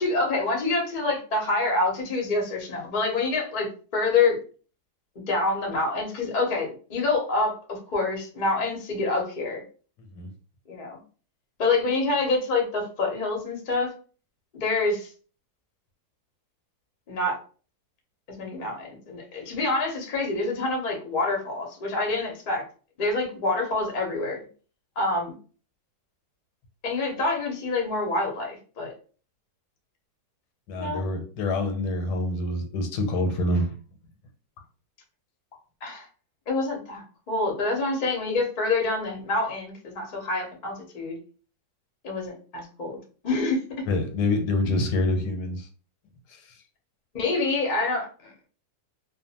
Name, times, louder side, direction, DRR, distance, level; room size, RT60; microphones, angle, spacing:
voice 1, 0.0-4.4 5.3-9.6 10.7-11.0 11.6-13.9 14.5-15.1 17.1-17.4 18.3-22.6 23.0-24.4 25.0-25.3 26.8-28.9 30.8-31.0 35.8-36.1 36.5-41.2 42.0-43.0 43.2-43.8 44.6-44.8 47.1-48.3, left 3 dB, 45° left, 0 dB, 0.6 m, -27 dB
voice 2, 30.7-33.7 43.9-45.7 46.3-46.4, left 2 dB, 85° left, 4 dB, 1.2 m, -26 dB
2.5 x 2.4 x 2.7 m, 0.40 s
omnidirectional pair, 1.8 m